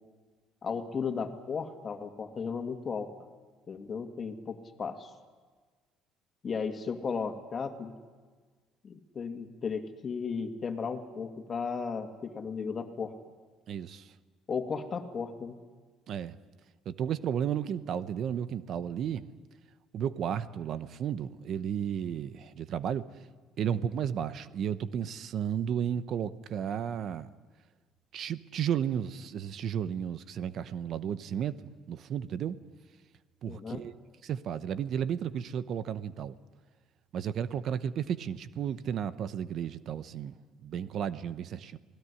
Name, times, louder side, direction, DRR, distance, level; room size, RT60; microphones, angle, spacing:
voice 1, 0.6-3.1 3.7-5.1 6.4-7.9 8.8-13.1 14.5-15.6 33.5-33.8, left 5 dB, 35° left, 2.3 m, -35 dB
voice 2, 13.7-14.1 16.1-16.4 16.9-19.3 19.9-23.1 23.6-27.3 28.1-31.6 31.9-32.6 33.4-33.9 34.2-36.4 37.1-40.3 40.6-41.8, right 8 dB, 55° right, 0.9 m, -33 dB
27.5 x 18.5 x 9.8 m
cardioid pair, 105°, 0 cm